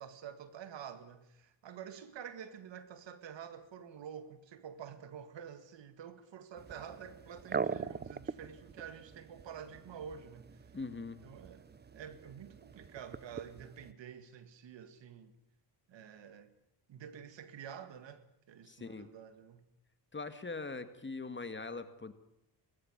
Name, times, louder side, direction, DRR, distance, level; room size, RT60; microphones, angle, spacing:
voice 1, 0.0-10.6 11.2-15.3 15.9-16.5 16.9-19.7, right 8 dB, 75° right, 2.0 m, -49 dB
sound 1, 6.6-13.9, right 5 dB, 25° right, 0.7 m, -43 dB
voice 2, 10.7-11.2 18.7-19.1 20.1-22.1, left 3 dB, 25° left, 1.9 m, -42 dB
20.0 x 14.5 x 9.6 m
cardioid pair, 85°, 44 cm